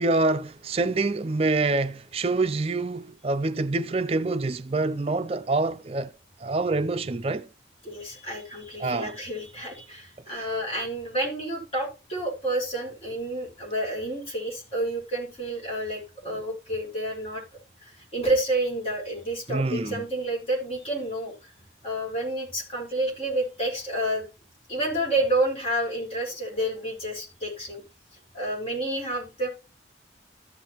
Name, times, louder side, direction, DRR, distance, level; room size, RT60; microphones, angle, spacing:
voice 1, 0.0-6.1 6.4-7.5 8.8-9.1 10.3-10.5 19.5-20.0, right 3 dB, 35° right, 0.4 m, -26 dB
voice 2, 7.8-17.4 17.8-21.5 21.8-24.3 24.7-27.8 28.3-29.5, right 1 dB, 35° left, 4.7 m, -29 dB
14.0 x 6.1 x 3.0 m
head